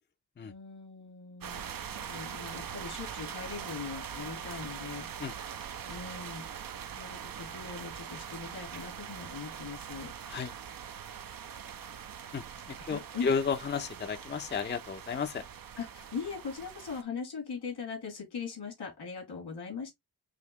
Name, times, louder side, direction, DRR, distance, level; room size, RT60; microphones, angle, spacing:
voice 1, 0.4-1.7 2.0-5.1 5.9-6.4 6.9-10.1 12.9-13.3 15.8-19.9, left 5 dB, 85° left, 2.4 m, -40 dB
sound 1, 1.4-17.0, right 8 dB, 60° right, 0.6 m, -42 dB
voice 2, 12.3-15.4, left 6 dB, 30° left, 0.5 m, -33 dB
5.0 x 2.9 x 2.8 m
wide cardioid pair, 90°, 39 cm